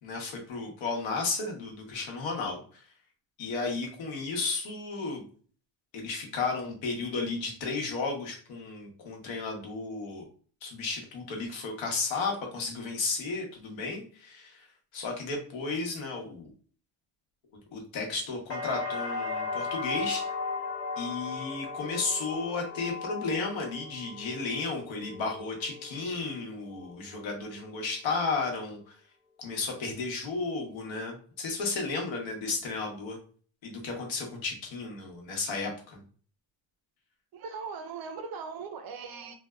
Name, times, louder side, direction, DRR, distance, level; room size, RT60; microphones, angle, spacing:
voice 1, 0.0-2.9 3.4-5.2 5.9-10.2 10.6-14.7 14.9-16.5 17.7-20.2 21.0-29.0 29.4-33.2 33.6-36.0, left 3 dB, 65° left, 1 dB, 1.0 m, -33 dB
sound 1, 18.5-26.4 26.8-27.4, left 4 dB, 25° left, 0.9 m, -36 dB
voice 2, 37.3-39.3, right 5 dB, 50° right, 7 dB, 0.5 m, -39 dB
2.6 x 2.2 x 2.2 m, 0.43 s
cardioid pair, 130°, 49 cm